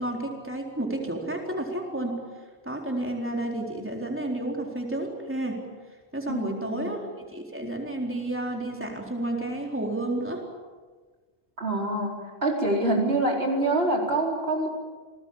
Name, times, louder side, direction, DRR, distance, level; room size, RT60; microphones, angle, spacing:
voice 1, 0.0-2.2 2.7-5.6 6.1-10.4, right 1 dB, 10° right, 0 dB, 4.1 m, -31 dB
voice 2, 6.3-6.9 11.6-14.7, right 2 dB, 65° right, 0 dB, 4.8 m, -26 dB
29.5 x 19.5 x 8.8 m, 1.4 s
omnidirectional pair, 1.1 m